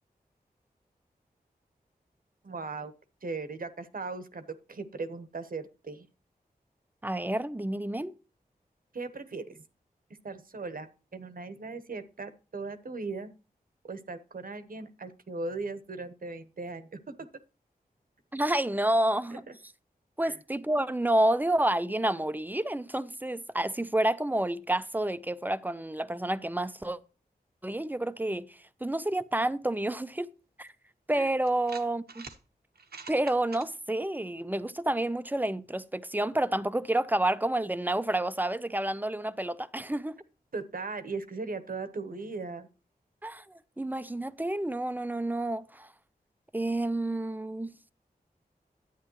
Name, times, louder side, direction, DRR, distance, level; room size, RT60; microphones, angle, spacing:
voice 1, 2.4-2.9 3.2-6.1 8.9-9.6 10.2-13.3 13.8-17.0 19.3-19.5 20.2-20.4 31.1-31.3 40.5-42.7, right 3 dB, 65° right, 1.1 m, -38 dB
voice 2, 7.0-8.1 18.3-19.4 20.2-27.0 27.6-30.3 30.6-30.7 31.1-32.3 33.1-40.2 43.2-45.9 46.5-47.7, right 1 dB, 10° right, 0.6 m, -29 dB
sound 1, 30.7-30.8 31.5-32.4 32.8-33.7, right 4 dB, 85° right, 1.1 m, -45 dB
10.5 x 9.1 x 3.0 m
wide cardioid pair, 75°, 16 cm